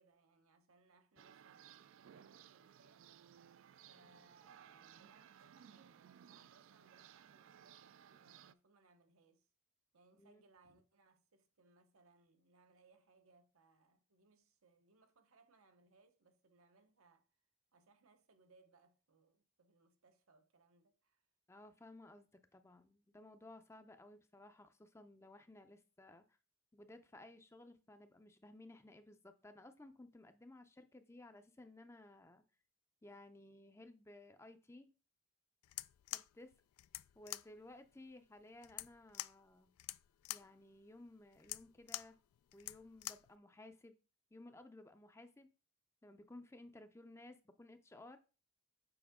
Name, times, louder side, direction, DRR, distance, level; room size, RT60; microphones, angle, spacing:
voice 1, 0.0-9.5 9.9-17.3 17.7-21.2 37.6-37.7, right 3 dB, 85° right, 0.9 m, -70 dB
sound 1, 1.2-8.5, right 9 dB, 60° right, 0.3 m, -61 dB
voice 2, 21.5-26.2 26.7-32.4 33.0-34.9 36.1-36.5 37.2-39.7 40.3-42.2 42.5-43.9 44.3-45.5 46.0-48.2, left 2 dB, 10° left, 0.5 m, -57 dB
sound 2, 35.6-43.4, left 18 dB, 90° left, 0.3 m, -48 dB
7.0 x 4.5 x 3.6 m
head